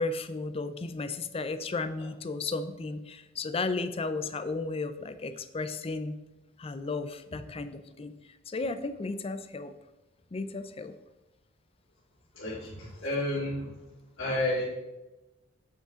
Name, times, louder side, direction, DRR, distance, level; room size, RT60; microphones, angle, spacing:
voice 1, 0.0-6.2 6.6-8.1 8.5-9.7 10.3-10.9, left 3 dB, 30° left, 11 dB, 0.4 m, -34 dB
voice 2, 12.3-13.7 14.2-14.6, left 1 dB, 80° left, -10 dB, 2.2 m, -31 dB
8.3 x 5.7 x 3.7 m, 1.0 s
head